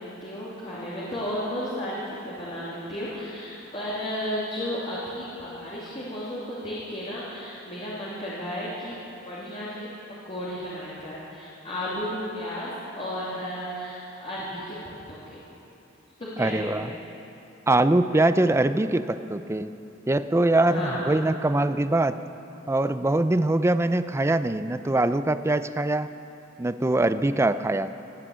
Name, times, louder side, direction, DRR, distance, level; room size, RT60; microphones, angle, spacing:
voice 1, 0.0-9.0 9.2-9.9 10.3-14.7 15.1-15.4 16.2-16.9 20.7-21.1, equal, 30° left, -8 dB, 2.9 m, -33 dB
voice 2, 16.4-16.9 17.7-19.7 20.1-22.2 22.7-26.1 26.6-27.9, right 2 dB, 15° right, 12 dB, 0.4 m, -23 dB
18.0 x 9.9 x 8.0 m, 2.8 s
head